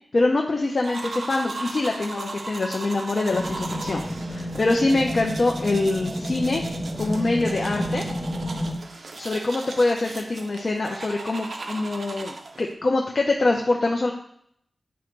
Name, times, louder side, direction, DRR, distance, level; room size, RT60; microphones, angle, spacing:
voice 1, 0.1-4.0 4.3-6.6 7.0-8.0 9.2-14.1, left 2 dB, 50° left, 0 dB, 0.7 m, -24 dB
sound 1, 0.8-12.7, right 3 dB, 65° right, 0.7 m, -37 dB
sound 2, 3.3-8.7, equal, 15° left, 0.9 m, -31 dB
8.2 x 3.1 x 4.6 m, 0.66 s
wide cardioid pair, 105°, 0 cm